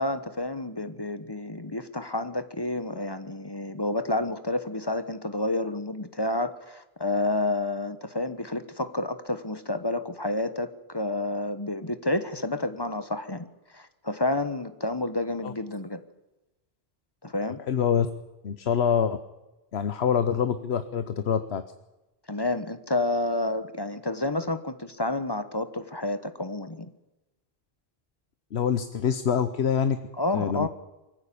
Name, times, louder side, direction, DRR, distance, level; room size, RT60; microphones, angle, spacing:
voice 1, 0.0-13.5 13.7-16.0 17.2-17.6 22.3-26.9 30.2-30.7, left 2 dB, 25° left, 11 dB, 1.1 m, -29 dB
voice 2, 17.7-18.1 18.4-19.2 19.7-21.6 28.5-30.0 30.3-30.7, left 7 dB, 85° left, 10 dB, 1.2 m, -25 dB
23.0 x 15.5 x 8.6 m, 1.0 s
omnidirectional pair, 1.1 m